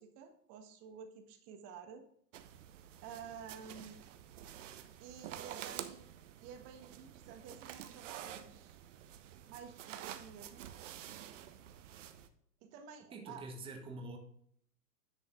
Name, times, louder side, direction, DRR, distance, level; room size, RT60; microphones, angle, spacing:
voice 1, 0.0-2.0 3.0-4.0 5.0-6.1 6.4-8.8 9.5-10.7 12.6-13.4, right 7 dB, 30° right, 6 dB, 1.3 m, -51 dB
sound 1, 2.3-12.3, right 11 dB, 50° right, 0.8 m, -49 dB
voice 2, 13.1-14.2, right 2 dB, 10° right, 3 dB, 1.0 m, -45 dB
10.0 x 5.4 x 3.7 m, 0.67 s
hypercardioid pair, 120°, 49 cm